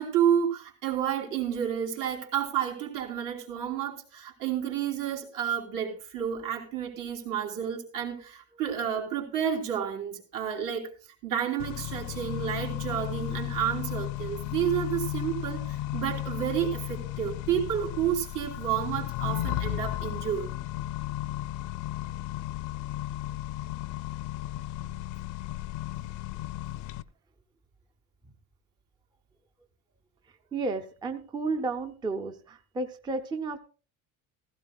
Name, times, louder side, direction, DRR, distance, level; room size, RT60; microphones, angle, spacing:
voice 1, 0.0-10.9 11.2-20.5, right 9 dB, 75° right, 0 dB, 3.5 m, -30 dB
Accelerating revving vroom, 11.6-27.0, left 14 dB, 60° left, 0.5 m, -34 dB
voice 2, 30.3-33.6, right 3 dB, 15° right, 6 dB, 0.5 m, -32 dB
16.0 x 15.0 x 2.3 m, 0.37 s
cardioid pair, 175°, 33 cm